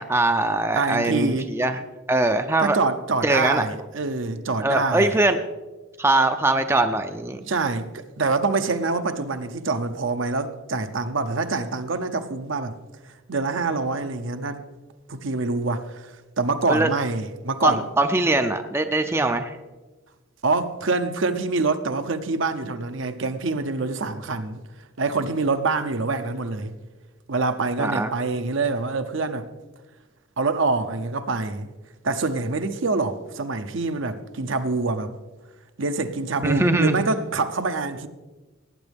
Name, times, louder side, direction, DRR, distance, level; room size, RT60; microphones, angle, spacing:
voice 1, 0.0-1.8 2.1-2.8 3.2-3.7 4.6-5.4 6.0-7.4 16.7-16.9 17.6-19.6 27.8-28.1 36.4-37.0, right 2 dB, 10° right, 0.4 m, -22 dB
voice 2, 0.7-1.5 2.6-5.1 7.5-12.8 13.1-14.6 15.1-17.8 20.4-24.6 25.0-26.7 27.3-29.5 30.4-31.7 32.0-35.1 35.8-38.1, right 3 dB, 65° right, 0.7 m, -25 dB
18.5 x 9.0 x 3.5 m
head